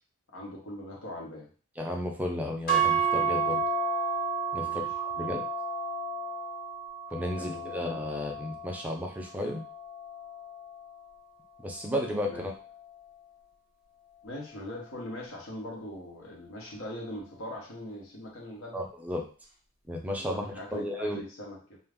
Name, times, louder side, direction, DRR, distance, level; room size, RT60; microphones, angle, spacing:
voice 1, 0.3-1.5 4.6-5.3 7.4-7.8 12.2-12.5 14.2-18.8 20.1-21.8, left 1 dB, 65° left, -2 dB, 0.9 m, -41 dB
voice 2, 1.8-3.6 4.5-5.4 7.1-9.6 11.6-12.5 18.7-19.2 19.9-21.2, left 1 dB, 5° right, 1 dB, 0.4 m, -33 dB
sound 1, 2.7-10.9, right 5 dB, 45° left, 0.7 m, -31 dB
2.4 x 2.2 x 3.4 m, 0.39 s
head